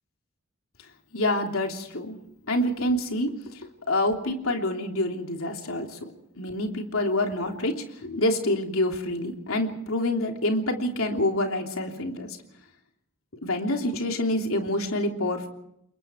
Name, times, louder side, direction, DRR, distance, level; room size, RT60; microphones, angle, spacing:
voice 1, 1.1-2.2 2.5-3.3 3.9-6.1 6.4-12.3 13.4-15.5, left 1 dB, 80° left, 3 dB, 3.2 m, -27 dB
29.0 x 22.5 x 4.6 m, 0.78 s
head